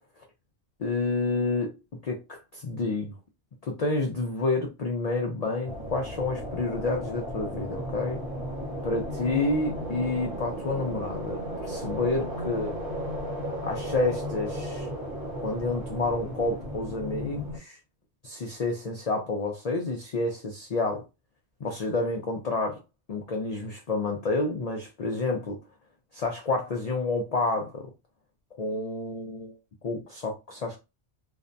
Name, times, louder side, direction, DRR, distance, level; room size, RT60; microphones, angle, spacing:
voice 1, 0.8-1.7 2.0-3.2 3.6-8.2 8.8-12.8 13.6-14.9 15.4-17.8 18.2-21.0 21.6-22.8 23.1-25.6 26.1-27.9 28.6-29.6 29.8-30.8, left 3 dB, 80° left, 0.3 m, -29 dB
sound 1, 5.6-17.6, equal, 50° right, 1.1 m, -35 dB
2.5 x 2.1 x 2.5 m
omnidirectional pair, 1.2 m